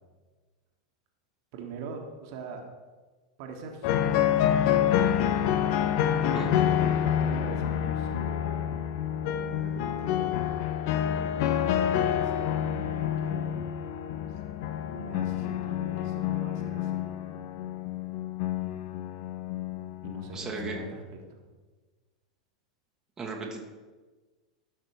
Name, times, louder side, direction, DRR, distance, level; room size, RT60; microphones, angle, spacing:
voice 1, 1.5-2.6 3.4-4.4 6.1-8.6 9.4-10.3 11.0-13.5 14.9-17.0 20.0-21.0 21.3-21.4, right 3 dB, 50° right, 2 dB, 1.6 m, -42 dB
sound 1, 3.8-20.9, left 10 dB, 50° left, 0.6 m, -28 dB
voice 2, 6.3-6.7 20.3-20.8 23.2-23.6, right 4 dB, 15° right, 0 dB, 1.4 m, -35 dB
12.5 x 5.9 x 4.6 m, 1.3 s
figure-of-eight pair, 90°, 3 cm